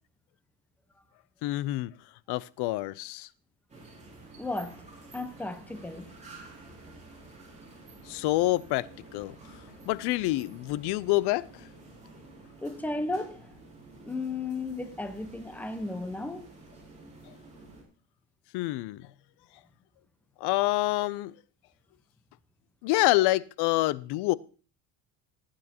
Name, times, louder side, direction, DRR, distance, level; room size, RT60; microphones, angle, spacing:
voice 1, 1.4-1.9 2.3-3.3 8.1-9.4 9.9-11.5 18.5-19.0 20.4-21.3 22.8-24.3, left 18 dB, 60° left, 0.6 m, -27 dB
sound 1, 3.7-17.8, right 2 dB, 15° right, 3.7 m, -50 dB
voice 2, 4.4-6.1 12.6-13.5 14.0-16.5, left 2 dB, 5° left, 0.9 m, -35 dB
16.5 x 8.9 x 2.9 m
cardioid pair, 125°, 44 cm